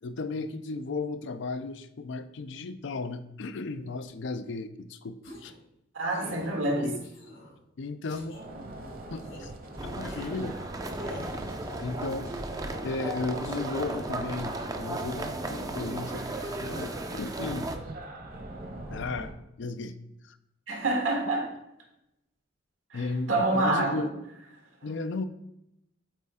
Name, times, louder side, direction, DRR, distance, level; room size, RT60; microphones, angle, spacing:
voice 1, 0.0-5.5 6.7-7.1 7.8-8.4 9.1-9.5 9.8-10.6 11.8-12.3 12.8-17.7 18.9-19.3 19.6-20.0 20.2-20.4 22.9-24.1 24.8-25.3, left 3 dB, 65° left, 11 dB, 0.5 m, -35 dB
Strong Man Hurt Noises, 5.2-5.6 6.1-6.5 7.0-7.5 8.1-8.4 9.1-9.5 10.1-10.3 10.9-11.4, left 1 dB, 85° left, 2.6 m, -45 dB
voice 2, 5.9-6.9 20.7-21.5 22.9-24.1, right 2 dB, 85° right, 1 dB, 1.8 m, -27 dB
sound 1, 8.3-19.3, right 2 dB, 50° right, 1.1 m, -42 dB
sound 2, 9.8-17.8, right 2 dB, 20° right, 0.5 m, -35 dB
8.1 x 4.3 x 3.6 m, 0.84 s
head